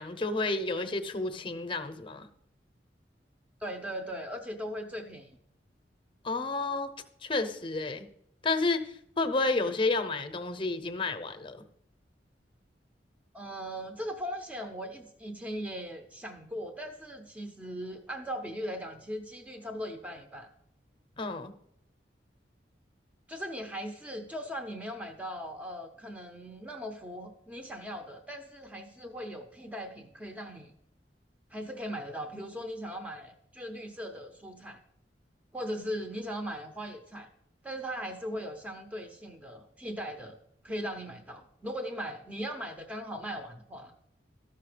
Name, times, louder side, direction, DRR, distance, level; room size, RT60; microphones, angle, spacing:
voice 1, 0.0-2.3 6.2-6.9 7.2-8.1 8.4-11.6 21.2-21.5, left 3 dB, 30° left, 9 dB, 0.7 m, -31 dB
voice 2, 3.6-5.4 13.3-20.5 23.3-30.7 31.5-34.8 35.5-37.3 37.6-40.4 40.6-43.9, equal, 10° right, 5 dB, 0.6 m, -39 dB
13.0 x 5.8 x 5.0 m, 0.72 s
head